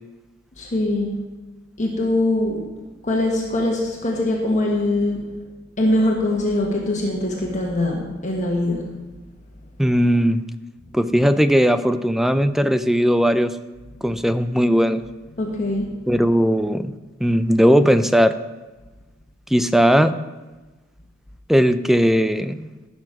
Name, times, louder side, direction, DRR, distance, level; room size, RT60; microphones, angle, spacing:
voice 1, 0.6-1.1 1.8-2.6 3.0-5.2 5.8-8.9 15.4-15.9, left 1 dB, 40° left, -1 dB, 1.5 m, -22 dB
voice 2, 9.8-10.4 10.9-13.5 14.0-15.0 16.1-16.9 17.2-18.3 19.5-20.1 21.5-22.7, equal, ahead, 12 dB, 0.4 m, -18 dB
15.0 x 6.1 x 6.0 m, 1.2 s
head